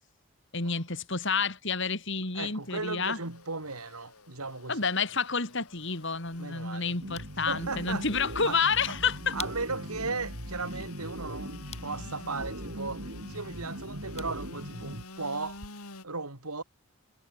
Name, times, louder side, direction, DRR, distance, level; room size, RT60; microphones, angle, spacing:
voice 1, 0.5-3.2 4.7-9.4, left 5 dB, 55° left, 3.6 m, -29 dB
Engine / Sawing, 2.3-16.0, left 3 dB, 85° left, 8.0 m, -50 dB
voice 2, 2.3-4.8 6.4-7.0 7.5-8.0 8.4-8.6 8.9-9.0 9.3-15.6 16.0-16.6, right 3 dB, 85° right, 4.4 m, -36 dB
sound 1, 5.7-15.7, left 7 dB, 30° left, 6.5 m, -51 dB
sound 2, 7.0-15.0, right 1 dB, 60° right, 5.4 m, -40 dB
head